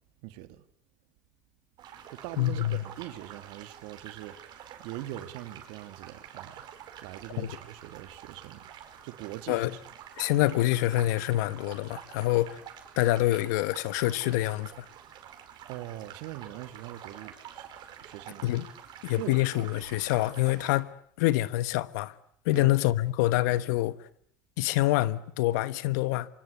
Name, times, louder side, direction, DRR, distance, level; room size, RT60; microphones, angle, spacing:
voice 1, 0.2-0.6 2.1-4.4 4.8-6.6 7.0-8.6 9.0-9.8 15.7-17.7 18.0-18.5 19.0-19.4 22.5-22.8, right 15 dB, 70° right, 2.2 m, -42 dB
sound 1, 1.8-20.7, right 9 dB, 50° right, 5.3 m, -48 dB
voice 2, 2.4-2.8 7.4-7.5 9.5-9.7 10.2-12.6 13.0-14.8 18.4-18.6 19.0-20.9 21.2-22.1 22.4-24.0 24.6-26.3, left 16 dB, 75° left, 1.3 m, -26 dB
26.5 x 25.0 x 8.3 m
supercardioid pair, 95°, 10 cm